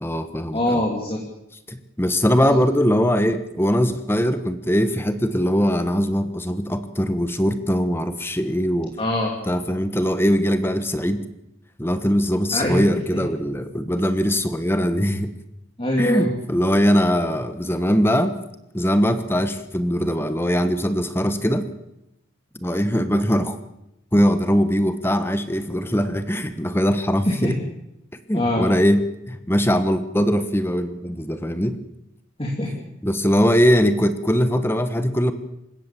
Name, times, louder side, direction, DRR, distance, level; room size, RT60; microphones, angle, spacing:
voice 1, 0.0-0.8 1.7-9.0 9.5-11.2 11.8-15.3 16.0-18.4 18.7-21.7 22.6-23.6 24.1-27.6 28.3-31.8 33.0-35.3, equal, 10° left, 10 dB, 1.3 m, -21 dB
voice 2, 0.5-1.2 9.0-9.3 12.5-12.8 13.1-13.2 15.8-16.3 27.2-27.6 28.3-28.7 32.4-32.9, left 1 dB, 25° left, 0 dB, 2.9 m, -23 dB
27.5 x 16.5 x 7.6 m, 0.85 s
head